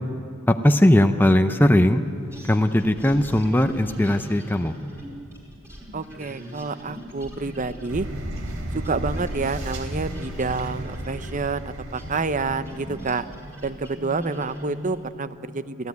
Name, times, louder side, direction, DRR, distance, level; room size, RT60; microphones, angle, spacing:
voice 1, 0.5-2.0 2.4-4.7, left 1 dB, 10° left, 7 dB, 0.6 m, -19 dB
sound 1, 2.3-8.6 8.8-15.1, equal, 10° right, 4.5 m, -40 dB
voice 2, 5.9-8.1 8.7-13.3 13.6-15.9, right 4 dB, 35° right, 13 dB, 0.7 m, -28 dB
sound 2, 7.9-13.1, right 1 dB, 65° right, 3.3 m, -34 dB
27.5 x 15.5 x 9.5 m, 2.6 s
head